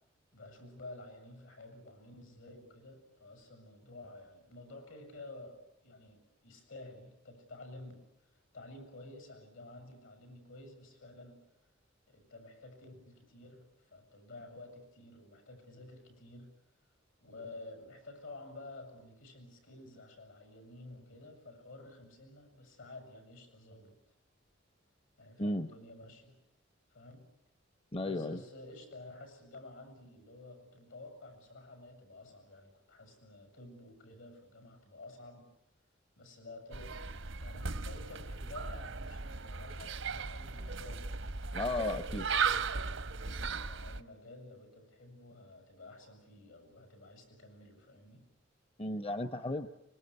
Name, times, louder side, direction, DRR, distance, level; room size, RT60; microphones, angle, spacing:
voice 1, 0.3-8.1 8.5-11.4 12.1-16.5 17.2-23.9 25.2-26.4 26.9-27.3 28.0-35.5 36.2-37.0 37.4-41.2 43.4-48.3, left 2 dB, 80° left, 7 dB, 7.2 m, -51 dB
voice 2, 27.9-28.4 41.5-42.3 48.8-49.7, left 2 dB, 30° left, 10 dB, 0.9 m, -34 dB
sound 1, 36.7-44.0, right 5 dB, 75° right, 1.2 m, -37 dB
24.5 x 22.0 x 9.8 m, 0.80 s
head